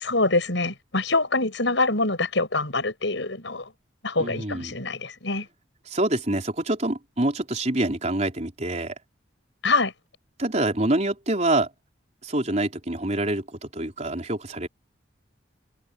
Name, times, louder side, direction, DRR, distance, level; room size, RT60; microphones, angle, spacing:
voice 1, 0.0-3.7 4.0-5.5 9.6-9.9, left 3 dB, 75° left, 6.2 m, -25 dB
voice 2, 4.2-4.8 5.9-8.9 10.4-11.7 12.2-14.7, right 1 dB, 35° right, 4.5 m, -26 dB
open air
head